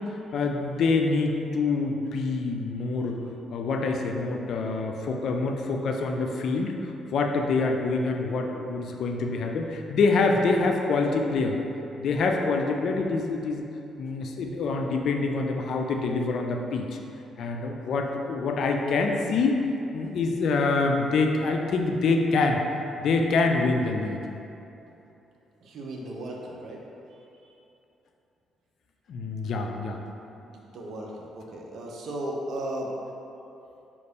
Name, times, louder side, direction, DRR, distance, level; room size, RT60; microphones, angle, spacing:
voice 1, 0.0-3.2 3.5-11.6 12.0-13.6 14.0-17.0 17.4-19.6 19.9-22.6 23.0-24.2 29.1-30.0, left 3 dB, 70° left, 3 dB, 0.4 m, -26 dB
voice 2, 25.6-26.8 27.1-27.5 30.4-32.9, right 1 dB, 65° right, -1 dB, 0.6 m, -36 dB
5.3 x 2.5 x 3.4 m, 2.9 s
cardioid pair, 90°, 0 cm